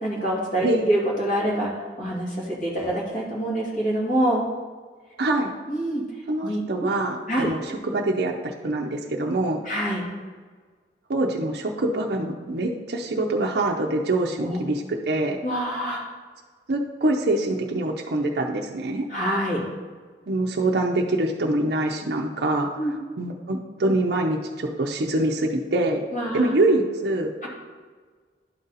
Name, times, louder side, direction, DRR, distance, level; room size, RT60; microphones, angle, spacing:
voice 1, 0.0-1.7 2.0-4.4 5.7-6.0 6.4-6.9 7.3-7.5 9.6-10.0 14.4-14.6 15.4-16.0 19.1-19.6 22.8-23.0 26.1-26.5 27.4-27.5, right 1 dB, 45° left, -4 dB, 2.2 m, -25 dB
voice 2, 5.2-5.5 6.3-9.6 11.1-15.4 16.7-19.1 20.3-22.7 23.2-26.1 26.3-27.3, right 2 dB, 60° right, 0 dB, 0.6 m, -24 dB
11.5 x 3.9 x 4.1 m, 1.5 s
head